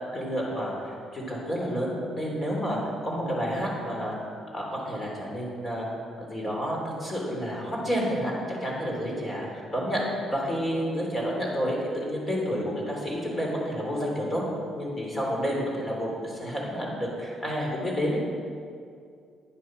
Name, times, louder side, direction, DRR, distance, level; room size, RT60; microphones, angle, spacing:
voice 1, 0.1-4.2 4.5-5.9 6.2-14.4 14.7-18.2, equal, 25° left, -2 dB, 3.4 m, -30 dB
10.0 x 9.2 x 6.3 m, 2.3 s
cardioid pair, 130°, 0 cm